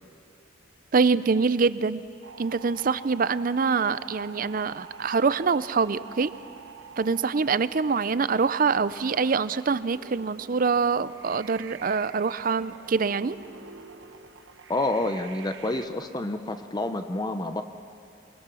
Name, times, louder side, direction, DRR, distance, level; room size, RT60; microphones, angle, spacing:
voice 1, 0.9-2.0 2.4-6.3 7.0-13.4, right 5 dB, 45° right, 16 dB, 0.5 m, -25 dB
sound 1, 2.2-15.9, right 5 dB, 65° right, 0.9 m, -47 dB
voice 2, 14.7-17.6, left 2 dB, 20° left, 8 dB, 0.6 m, -28 dB
27.0 x 20.0 x 6.2 m, 2.5 s
head